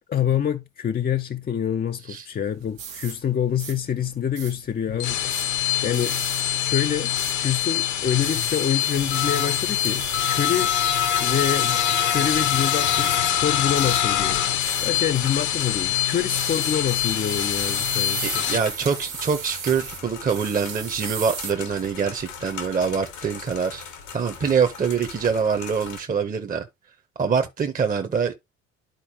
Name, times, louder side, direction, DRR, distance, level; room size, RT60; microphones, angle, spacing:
voice 1, 0.1-6.2 6.6-7.1 7.4-10.7 11.2-18.5, left 9 dB, 25° left, 0.5 m, -26 dB
sound 1, 2.4-21.5, right 7 dB, 85° right, 1.1 m, -38 dB
sound 2, 4.9-18.6, left 11 dB, 50° left, 0.9 m, -24 dB
sound 3, 10.0-26.0, left 6 dB, 80° left, 1.6 m, -40 dB
voice 2, 18.2-23.8 24.1-26.6 27.2-28.3, right 6 dB, 20° right, 0.9 m, -24 dB
11.5 x 4.1 x 2.8 m
hypercardioid pair, 55°, 38 cm